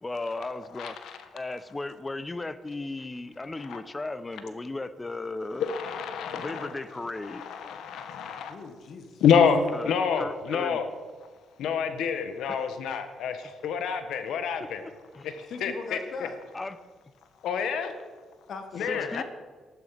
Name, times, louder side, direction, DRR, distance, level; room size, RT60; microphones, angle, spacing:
voice 1, 0.0-1.0 1.3-5.7 6.3-7.4 9.7-10.8 12.5-12.6 14.6-15.3 16.5-16.8 18.9-19.2, left 2 dB, 20° left, 14 dB, 0.9 m, -36 dB
voice 2, 0.8-1.2 3.7-3.8 5.6-6.7 7.2-8.6 9.2-10.9 11.6-14.8 15.2-16.0 17.4-17.9 18.8-19.2, left 6 dB, 85° left, 9 dB, 1.4 m, -27 dB
voice 3, 8.5-9.4 15.5-16.4 18.5-19.2, left 4 dB, 65° left, 7 dB, 1.7 m, -40 dB
14.5 x 12.0 x 5.9 m, 1.4 s
cardioid pair, 80°, 0 cm